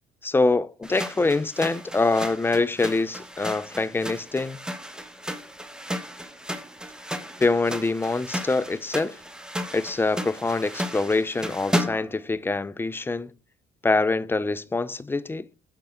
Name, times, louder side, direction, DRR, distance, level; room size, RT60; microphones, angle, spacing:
voice 1, 0.2-4.6 7.4-9.2 9.7-13.3 13.8-15.5, left 3 dB, 15° left, 0.4 m, -25 dB
sound 1, 0.8-12.2, equal, 5° right, 0.8 m, -34 dB
7.8 x 4.7 x 4.3 m
cardioid pair, 110°, 17 cm